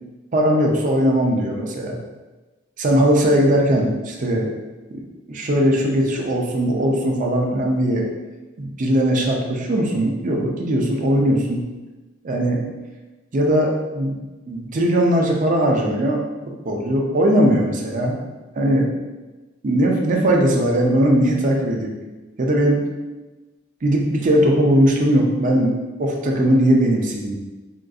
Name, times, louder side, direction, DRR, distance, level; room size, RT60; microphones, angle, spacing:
voice 1, 0.3-2.0 2.8-4.5 4.9-5.0 5.3-8.1 8.6-11.6 12.2-12.6 13.3-14.2 14.5-16.2 16.6-18.2 18.6-18.9 19.6-22.0 22.4-22.8 23.8-27.3, right 1 dB, 40° right, 0 dB, 0.5 m, -19 dB
3.6 x 2.5 x 2.3 m, 1.2 s
head